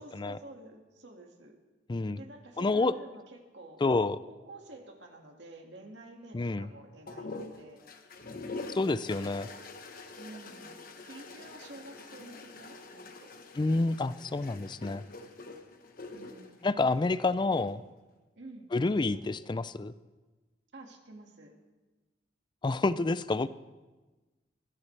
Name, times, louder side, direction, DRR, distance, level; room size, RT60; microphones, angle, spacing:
voice 1, 0.0-1.6 2.2-3.8 4.3-7.3 7.6-7.8 10.2-13.3 16.1-16.7 18.4-18.7 20.7-21.6, right 2 dB, 70° right, 2 dB, 2.1 m, -50 dB
voice 2, 2.6-2.9 3.8-4.2 6.3-6.7 8.7-9.5 13.6-15.0 16.6-17.8 18.7-19.9 22.6-23.5, left 3 dB, 25° left, 15 dB, 0.4 m, -28 dB
sound 1, 7.1-17.7 18.9-19.5, left 3 dB, 55° left, 1.3 m, -45 dB
21.0 x 15.0 x 3.4 m, 1.2 s
head